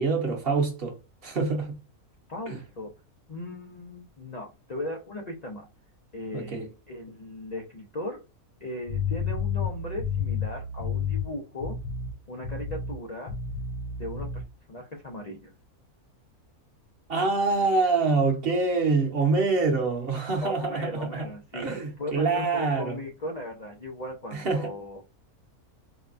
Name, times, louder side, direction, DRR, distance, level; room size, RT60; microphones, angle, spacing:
voice 1, 0.0-1.7 2.5-2.6 6.3-6.7 17.1-21.3 21.5-23.0 24.3-24.6, right 3 dB, 45° right, 1.0 m, -25 dB
voice 2, 2.3-2.9 3.3-5.7 6.1-8.2 8.6-11.8 12.3-13.3 14.0-14.4 14.7-15.5 20.4-21.7 22.0-25.1, left 1 dB, 85° left, 0.3 m, -37 dB
sound 1, 8.9-11.3 11.6-12.1 12.4-13.0 13.3-14.4, left 6 dB, 50° left, 0.7 m, -31 dB
4.5 x 2.2 x 2.5 m
omnidirectional pair, 1.5 m